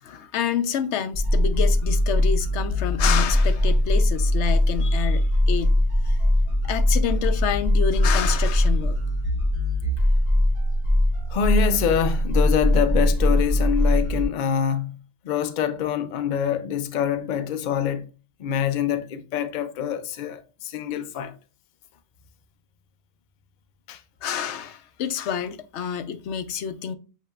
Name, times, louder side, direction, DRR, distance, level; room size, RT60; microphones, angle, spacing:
voice 1, 0.0-5.7 6.0-6.3 6.6-9.0 24.2-26.9, left 8 dB, 90° left, 0.9 m, -28 dB
sound 1, 1.1-14.2, left 1 dB, 55° right, 1.6 m, -21 dB
voice 2, 11.3-15.0 15.2-18.1 18.4-21.3 23.9-24.0, left 8 dB, 55° left, 0.6 m, -25 dB
8.1 x 2.9 x 2.3 m
omnidirectional pair, 1.1 m